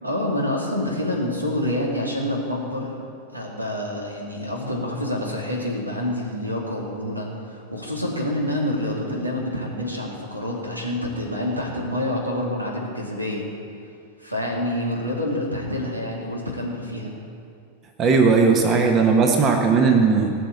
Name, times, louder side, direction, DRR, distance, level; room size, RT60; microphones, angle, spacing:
voice 1, 0.0-3.0 3.3-13.5 14.2-17.2, left 1 dB, 85° right, -1 dB, 2.5 m, -27 dB
voice 2, 18.0-20.3, right 5 dB, 30° right, 3 dB, 1.3 m, -17 dB
18.0 x 6.4 x 7.9 m, 2.4 s
figure-of-eight pair, 90°, 0 cm